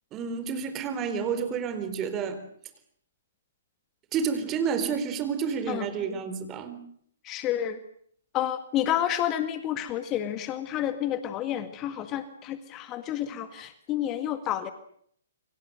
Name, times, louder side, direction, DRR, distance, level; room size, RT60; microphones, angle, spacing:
voice 1, 0.1-2.4 4.1-6.8, right 6 dB, 25° right, 10 dB, 4.1 m, -30 dB
voice 2, 7.2-7.8 8.3-14.7, left 11 dB, 25° left, 10 dB, 1.9 m, -30 dB
28.5 x 24.5 x 6.6 m, 0.65 s
figure-of-eight pair, 125°, 0 cm